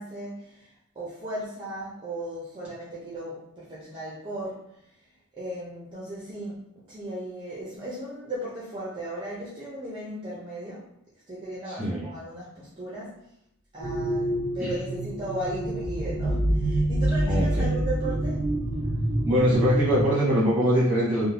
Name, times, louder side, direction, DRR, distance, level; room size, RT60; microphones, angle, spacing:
voice 1, 0.0-4.7 5.4-6.6 6.9-10.9 11.3-13.2 13.7-18.5, right 1 dB, 20° right, -7 dB, 0.5 m, -36 dB
voice 2, 11.7-12.1 14.6-14.7 17.3-17.7 19.2-21.3, equal, 5° right, -8 dB, 1.0 m, -23 dB
sound 1, 13.8-20.1, right 1 dB, 60° left, 1.2 m, -27 dB
2.6 x 2.1 x 3.2 m, 0.77 s
head